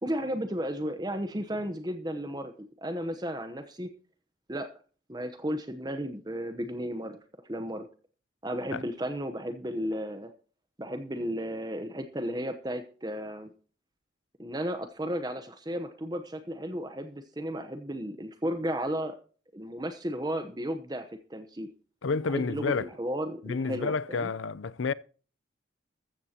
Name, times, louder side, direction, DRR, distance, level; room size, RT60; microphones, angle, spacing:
voice 1, 0.0-3.9 4.5-4.7 5.1-7.2 7.4-7.9 8.4-10.3 10.8-13.5 14.4-19.2 19.5-21.7 22.3-24.3, equal, 20° right, 0.9 m, -34 dB
voice 2, 22.0-22.9 23.4-24.9, left 4 dB, 85° left, 0.6 m, -30 dB
14.0 x 13.5 x 2.9 m
head